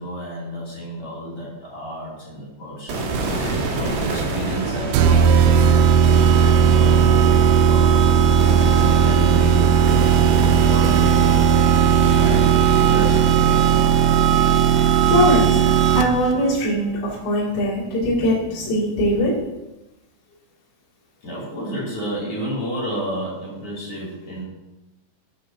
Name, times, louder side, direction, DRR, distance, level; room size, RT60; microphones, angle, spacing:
voice 1, 0.0-5.9 6.2-7.0 7.3-10.2 10.5-11.6 11.9-13.7 21.2-24.4, equal, 35° left, -7 dB, 3.3 m, -31 dB
sound 1, 2.9-17.2, right 3 dB, 65° right, 3.9 m, -28 dB
sound 2, 4.9-16.3, right 8 dB, 90° right, 3.3 m, -16 dB
voice 2, 15.0-15.7 15.9-19.4, equal, 55° left, -7 dB, 4.3 m, -21 dB
14.0 x 8.4 x 2.9 m, 0.98 s
omnidirectional pair, 5.7 m